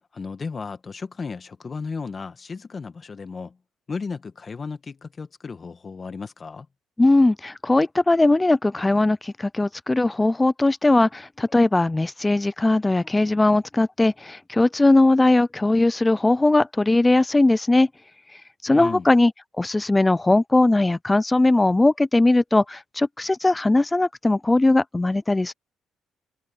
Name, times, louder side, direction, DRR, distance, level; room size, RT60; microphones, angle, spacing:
voice 1, 0.1-3.6 3.9-6.7 18.7-19.1, left 4 dB, 30° left, 1.8 m, -34 dB
voice 2, 7.0-17.9 18.6-19.3 19.6-25.5, left 2 dB, 15° left, 0.4 m, -19 dB
cardioid pair, 105°, 0 cm